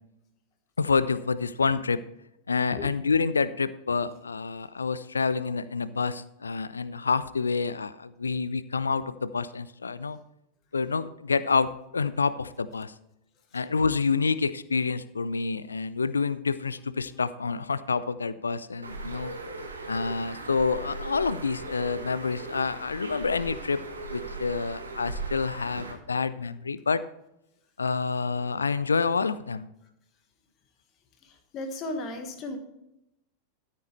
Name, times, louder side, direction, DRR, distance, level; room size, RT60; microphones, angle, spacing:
voice 1, 0.8-2.0 2.5-10.2 10.7-12.9 13.5-19.3 19.9-27.0 27.8-29.7, left 4 dB, 75° left, 16 dB, 0.4 m, -28 dB
Bird, 18.8-25.9, right 3 dB, 75° right, 1.7 m, -38 dB
voice 2, 31.5-32.6, left 2 dB, 35° left, 5 dB, 1.6 m, -34 dB
13.0 x 8.5 x 3.3 m, 0.84 s
figure-of-eight pair, 90°, 0 cm